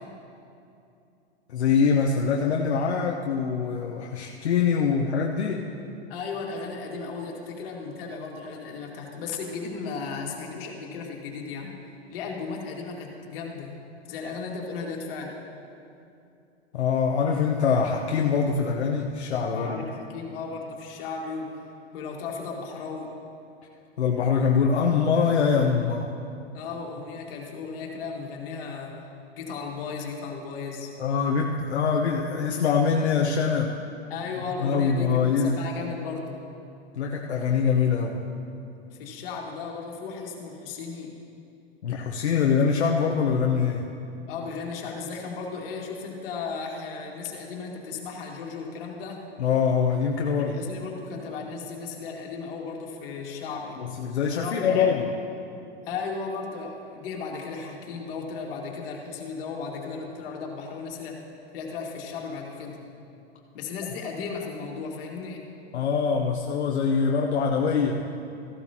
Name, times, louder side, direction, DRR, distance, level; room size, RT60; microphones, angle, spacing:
voice 1, 1.5-5.7 16.7-19.9 24.0-26.1 31.0-33.8 34.6-35.6 37.0-38.2 41.8-43.9 49.4-50.6 53.8-55.1 65.7-68.0, left 6 dB, 80° left, 1 dB, 0.9 m, -24 dB
voice 2, 6.1-11.8 12.1-13.7 14.1-15.4 19.5-21.5 21.9-23.1 26.5-29.0 29.4-30.9 34.1-36.4 38.9-41.2 44.3-49.3 50.4-53.8 54.3-55.0 55.9-61.2 61.5-62.8 63.5-65.4, left 4 dB, 55° left, -1 dB, 2.1 m, -35 dB
14.5 x 12.0 x 2.9 m, 2.7 s
hypercardioid pair, 120°, 32 cm